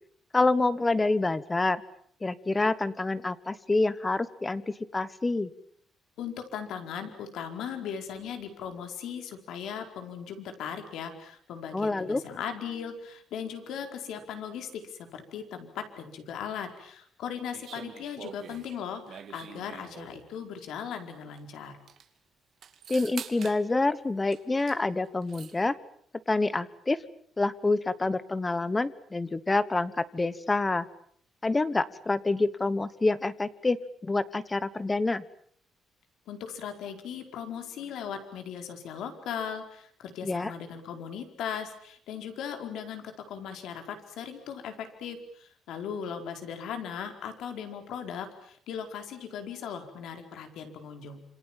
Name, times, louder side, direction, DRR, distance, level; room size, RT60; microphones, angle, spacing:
voice 1, 0.3-1.8 2.2-5.5 11.7-12.2 22.9-25.8 26.3-27.0 27.4-30.9 31.4-35.2 40.2-40.5, left 2 dB, 15° left, 16 dB, 1.1 m, -27 dB
voice 2, 6.2-21.8 36.3-51.2, left 7 dB, 80° left, 6 dB, 4.7 m, -38 dB
sound 1, 17.5-20.3 21.4-21.5 21.7-22.1 22.6-23.6 24.3-24.8 25.1-25.6, right 7 dB, 45° right, 2.5 m, -45 dB
27.5 x 26.5 x 7.5 m, 0.62 s
cardioid pair, 175°, 0 cm